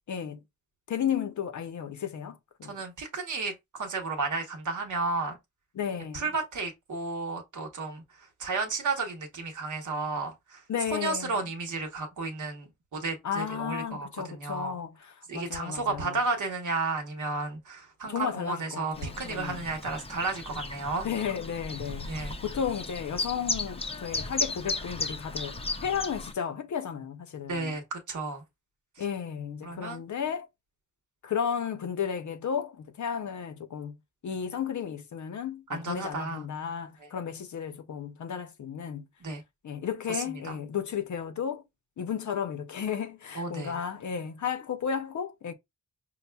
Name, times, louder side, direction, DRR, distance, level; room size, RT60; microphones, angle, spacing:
voice 1, 0.1-0.4 0.9-2.8 5.7-6.2 10.7-11.4 13.2-16.2 18.0-19.6 21.0-25.6 25.8-27.8 29.0-30.5 31.2-34.0 34.2-39.0 39.6-41.6 42.0-45.5, left 8 dB, 65° left, 0.6 m, -33 dB
voice 2, 2.6-5.4 6.1-10.6 10.9-14.7 15.3-21.1 22.1-22.3 27.5-28.4 29.0-29.1 29.6-30.1 35.7-36.5 37.0-37.1 39.2-39.4 40.1-40.5 43.3-43.8, right 3 dB, 65° right, 1.0 m, -33 dB
Chirp tweet, 18.9-26.3, left 3 dB, 20° left, 0.4 m, -35 dB
5.4 x 2.1 x 2.2 m
wide cardioid pair, 120°, 32 cm